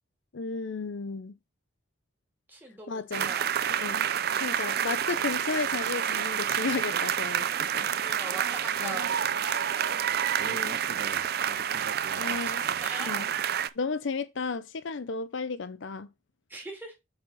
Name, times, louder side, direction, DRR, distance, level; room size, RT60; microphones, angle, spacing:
voice 1, 0.3-1.3 2.9-3.3 3.7-4.0 4.4-7.9 8.8-9.0 10.4-10.8 11.3-11.5 12.2-12.6 13.1-13.3 13.8-16.1, left 4 dB, 65° left, 0.5 m, -34 dB
voice 2, 2.5-3.5 8.0-10.0 11.8-13.2 16.5-16.9, right 2 dB, 10° right, 2.4 m, -43 dB
sound 1, 3.1-13.7, right 9 dB, 50° right, 0.4 m, -29 dB
7.6 x 4.3 x 4.1 m
head